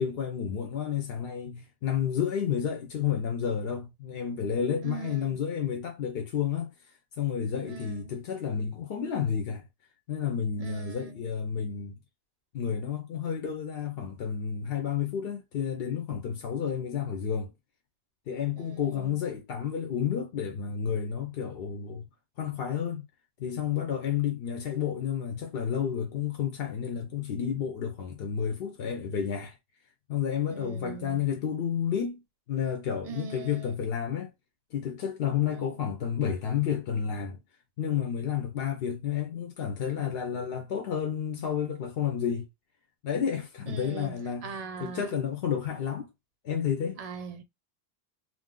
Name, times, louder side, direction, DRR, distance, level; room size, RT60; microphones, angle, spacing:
voice 1, 0.0-6.7 7.2-9.7 10.1-12.0 12.5-17.5 18.3-22.1 22.4-23.1 23.4-29.6 30.1-32.2 32.5-34.3 34.7-37.4 37.8-42.5 43.0-46.1 46.4-47.0, left 8 dB, 65° left, 0.8 m, -31 dB
voice 2, 4.8-5.4 7.6-8.2 10.6-11.3 18.5-19.2 30.5-31.2 33.0-33.7 35.5-35.7 43.7-45.1 47.0-47.4, right 5 dB, 50° right, 0.5 m, -41 dB
2.5 x 2.1 x 3.7 m
omnidirectional pair, 1.1 m